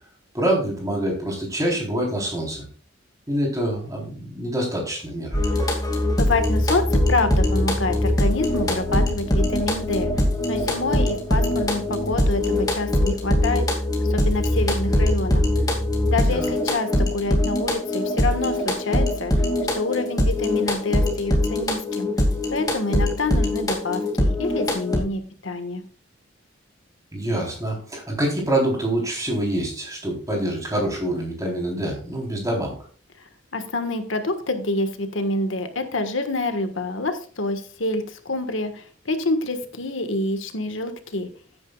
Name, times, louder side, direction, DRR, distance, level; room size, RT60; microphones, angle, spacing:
voice 1, 0.3-2.6 3.3-5.4 16.2-16.5 27.1-32.8, right 1 dB, 15° right, -1 dB, 3.7 m, -26 dB
sound 1, 5.3-25.0, left 1 dB, 20° left, 2.3 m, -22 dB
voice 2, 6.2-10.1 10.5-13.7 14.0-15.4 16.1-19.5 19.7-22.1 22.5-25.8 33.2-41.3, left 2 dB, 80° left, 8 dB, 1.5 m, -27 dB
14.5 x 9.6 x 2.4 m, 0.40 s
head